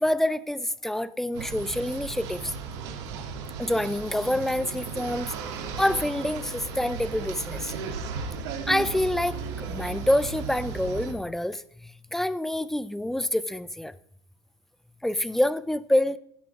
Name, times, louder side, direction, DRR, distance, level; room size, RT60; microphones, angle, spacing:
voice 1, 0.0-2.5 3.6-5.3 5.8-7.7 8.7-13.9 15.0-16.2, left 1 dB, ahead, 0.5 m, -27 dB
sound 1, 1.3-11.1, right 5 dB, 80° right, 2.8 m, -35 dB
16.5 x 5.9 x 4.7 m
supercardioid pair, 135°, 14 cm